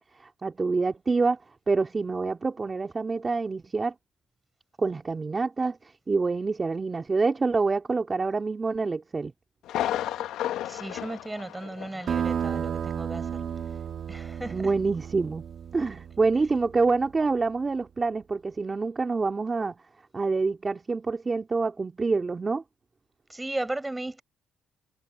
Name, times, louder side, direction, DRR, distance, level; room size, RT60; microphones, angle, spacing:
voice 1, 0.0-1.4 1.7-3.9 4.8-5.8 6.1-9.3 14.5-15.4 15.7-19.7 20.1-22.6, right 4 dB, 30° right, 2.6 m, -26 dB
Thunder, 9.7-12.2 12.5-12.6 13.2-13.3, left 12 dB, 80° left, 1.9 m, -32 dB
voice 2, 10.6-13.5 14.1-14.7 23.3-24.2, right 2 dB, 15° right, 7.8 m, -35 dB
sound 1, 12.1-17.2, right 8 dB, 60° right, 2.0 m, -33 dB
cardioid pair, 90°, 0 cm